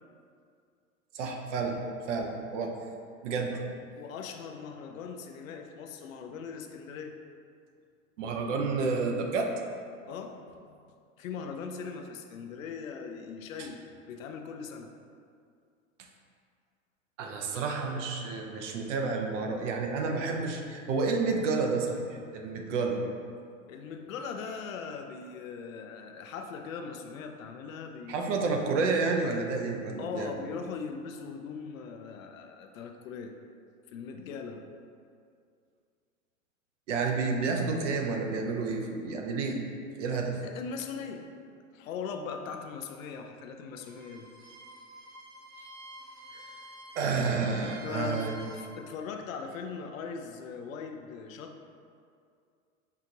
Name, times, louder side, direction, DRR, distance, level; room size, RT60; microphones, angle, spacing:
voice 1, 1.1-1.8 2.1-2.7 3.2-3.6 8.2-9.5 17.2-23.0 28.1-30.3 36.9-39.6 40.0-40.4 46.3-46.5 47.0-48.3, right 4 dB, 65° right, 2 dB, 0.7 m, -30 dB
voice 2, 4.0-7.2 10.1-10.8 11.2-14.9 23.7-28.3 30.0-33.3 33.9-34.7 40.1-41.3 41.7-44.3 45.6-45.7 47.7-51.6, left 5 dB, 75° left, 5 dB, 0.5 m, -40 dB
Bowed string instrument, 43.7-48.7, right 1 dB, 35° right, 0.9 m, -49 dB
5.6 x 2.4 x 2.9 m, 2.3 s
hypercardioid pair, 100°, 40 cm